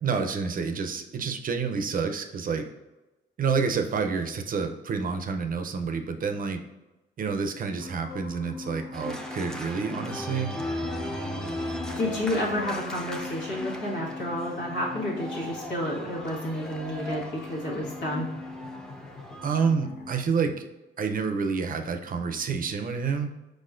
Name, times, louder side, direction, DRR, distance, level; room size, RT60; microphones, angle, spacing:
voice 1, 0.0-2.6 3.4-6.6 7.2-10.5 19.4-20.6 21.0-23.3, right 5 dB, 45° right, 7 dB, 0.5 m, -28 dB
sound 1, 7.8-20.1, left 3 dB, 50° left, 1.0 m, -41 dB
Organ, 8.9-19.7, equal, 5° left, 0.6 m, -38 dB
voice 2, 12.0-18.3, left 1 dB, 90° left, -5 dB, 1.6 m, -30 dB
4.8 x 4.2 x 2.5 m, 1.0 s
cardioid pair, 90°, 20 cm